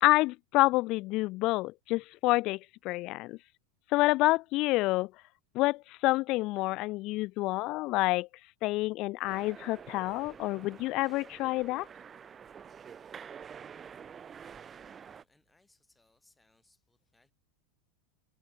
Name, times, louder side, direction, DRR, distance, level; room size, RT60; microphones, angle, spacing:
voice 1, 0.0-2.6 2.8-3.4 3.9-5.1 5.5-8.3 8.6-11.9, left 20 dB, 50° left, 0.4 m, -28 dB
sound 1, 9.3-15.2, right 7 dB, 25° right, 0.8 m, -48 dB
voice 2, 14.9-17.3, left 2 dB, 10° left, 3.4 m, -69 dB
supercardioid pair, 115°, 0 cm